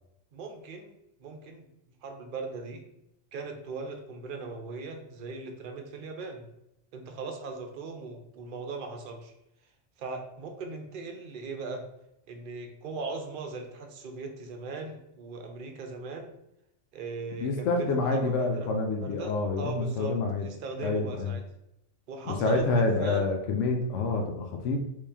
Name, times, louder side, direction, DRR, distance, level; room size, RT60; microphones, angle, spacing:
voice 1, 0.3-0.9 1.2-1.7 2.0-2.8 3.3-6.5 6.9-9.3 10.0-11.9 12.3-16.3 16.9-18.7 19.0-21.4 22.1-23.3, right 3 dB, 55° right, 3 dB, 0.6 m, -39 dB
voice 2, 17.4-20.5 20.8-21.3 22.3-24.8, left 3 dB, 75° left, 2 dB, 0.9 m, -27 dB
3.1 x 2.8 x 3.4 m, 0.84 s
omnidirectional pair, 1.3 m